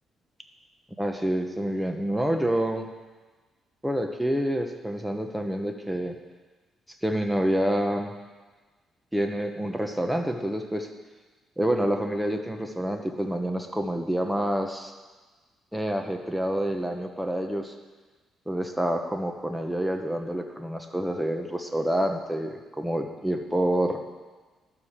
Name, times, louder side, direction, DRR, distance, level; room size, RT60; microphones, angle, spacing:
voice 1, 1.0-2.9 3.8-6.2 7.0-8.1 9.1-10.9 11.6-14.9 15.7-17.7 18.5-24.0, right 1 dB, 5° right, 4 dB, 1.2 m, -27 dB
12.0 x 5.0 x 7.4 m, 1.3 s
cardioid pair, 90°, 0 cm